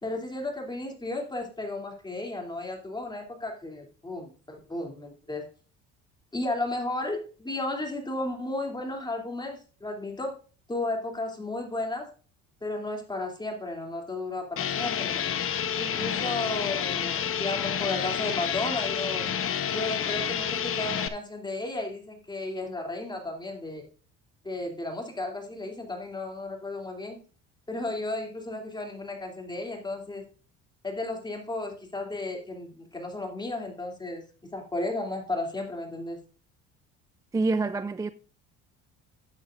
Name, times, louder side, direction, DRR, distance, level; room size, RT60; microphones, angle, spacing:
voice 1, 0.0-5.5 6.3-10.4 10.7-12.1 12.6-15.2 15.8-19.3 19.7-23.9 24.4-27.2 27.7-30.3 30.8-34.2 34.5-36.2, left 2 dB, 15° left, 2.7 m, -34 dB
sound 1, 14.6-21.1, left 8 dB, 45° left, 0.9 m, -29 dB
voice 2, 37.3-38.1, right 3 dB, 10° right, 0.3 m, -26 dB
12.5 x 8.1 x 2.5 m
supercardioid pair, 95°, 32 cm